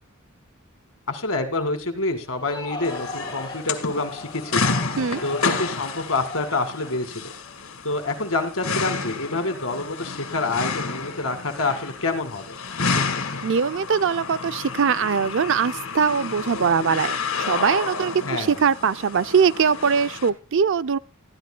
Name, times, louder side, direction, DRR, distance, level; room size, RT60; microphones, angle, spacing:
voice 1, 1.1-4.8 5.2-7.3 7.8-12.6 18.3-18.6, left 2 dB, 75° left, 2.2 m, -27 dB
Crowd, 2.3-8.1, left 3 dB, 20° left, 3.8 m, -38 dB
sound 1, 2.8-20.3, left 4 dB, 90° left, 2.0 m, -30 dB
voice 2, 13.4-21.0, right 6 dB, 60° right, 0.5 m, -22 dB
20.0 x 14.0 x 2.3 m
head